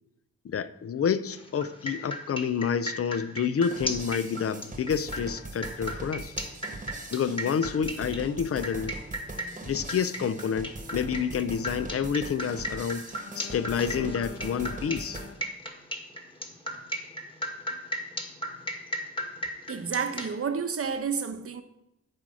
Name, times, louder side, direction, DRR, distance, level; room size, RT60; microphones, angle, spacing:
voice 1, 0.4-6.4 7.1-9.0 9.7-15.3, left 7 dB, 45° left, 0.5 m, -29 dB
sound 1, 1.3-20.3, equal, 15° left, 1.6 m, -36 dB
sound 2, 3.6-15.3, right 2 dB, 25° right, 1.2 m, -41 dB
voice 2, 19.7-21.6, right 6 dB, 45° right, 0.9 m, -30 dB
13.0 x 4.8 x 7.5 m
wide cardioid pair, 140°, 32 cm